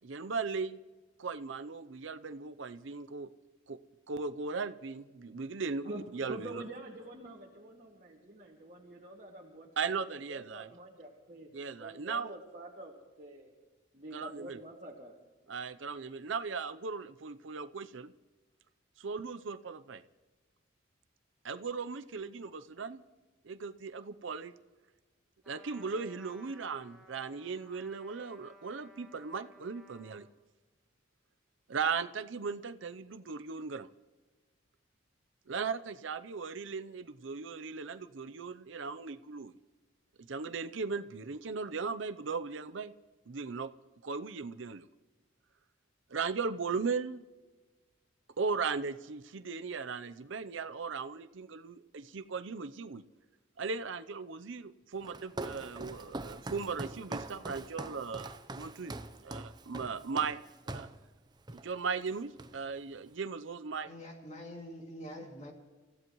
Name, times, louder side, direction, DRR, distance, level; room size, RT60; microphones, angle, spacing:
voice 1, 0.0-0.8 1.2-3.3 3.7-3.8 4.1-6.6 9.8-10.7 11.5-12.3 14.1-14.6 15.5-18.1 19.0-20.0 21.4-23.0 23.4-24.5 25.5-30.3 31.7-33.9 35.5-39.5 40.3-42.9 43.3-43.7 44.0-44.9 46.1-47.2 48.4-53.0 53.6-58.9 59.2-60.9 61.5-63.9, right 5 dB, 75° right, 12 dB, 0.6 m, -37 dB
voice 2, 5.8-11.5 11.8-13.5 13.9-15.1, right 1 dB, 40° right, -4 dB, 2.0 m, -47 dB
Trumpet, 25.4-30.3, right 1 dB, ahead, 2.4 m, -58 dB
Walk footsteps, 55.0-61.0 61.5-61.7 62.0-62.8, right 2 dB, 20° right, 0.6 m, -43 dB
voice 3, 63.9-65.5, equal, 35° left, 1 dB, 2.4 m, -45 dB
29.5 x 15.5 x 3.1 m, 1.2 s
head